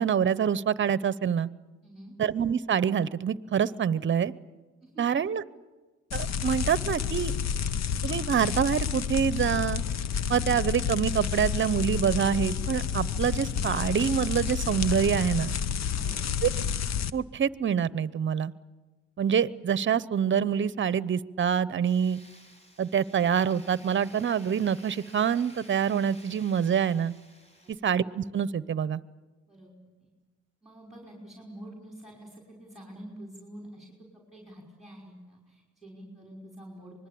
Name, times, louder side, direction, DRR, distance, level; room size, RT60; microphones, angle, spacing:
voice 1, 0.0-1.5 2.2-4.3 5.0-5.4 6.1-7.3 8.0-9.8 10.3-15.5 16.4-16.5 17.1-18.5 19.2-22.2 22.8-27.1 27.8-29.0, right 8 dB, 40° right, 18 dB, 0.8 m, -26 dB
voice 2, 1.8-2.2 4.8-5.0 16.0-16.2 27.6-27.9 29.5-29.7 30.0-30.1 30.6-37.1, right 1 dB, ahead, -1 dB, 5.6 m, -47 dB
sound 1, 6.1-17.1, left 7 dB, 60° left, 1.0 m, -30 dB
Tools, 21.9-27.7, equal, 20° left, 5.6 m, -54 dB
25.5 x 21.0 x 8.6 m, 1.2 s
cardioid pair, 90°, 30 cm